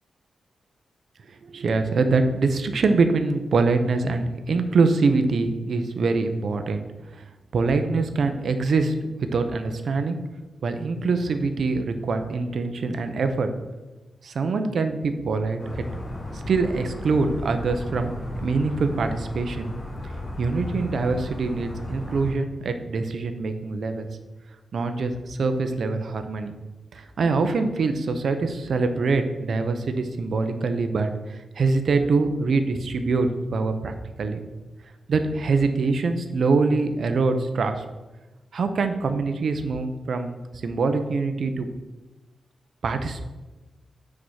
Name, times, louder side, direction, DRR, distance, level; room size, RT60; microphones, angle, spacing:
voice 1, 1.4-6.9 7.1-7.2 7.5-10.2 10.6-13.5 14.2-15.9 16.5-18.1 18.4-19.7 20.4-24.1 24.7-26.5 26.9-34.4 35.1-37.7 38.5-40.4 40.6-41.7 42.8-43.2, right 4 dB, 60° right, 7 dB, 0.8 m, -24 dB
sound 1, 15.6-22.3, left 1 dB, 50° left, 2.5 m, -35 dB
8.7 x 4.9 x 6.4 m, 1.1 s
wide cardioid pair, 165°, 0 cm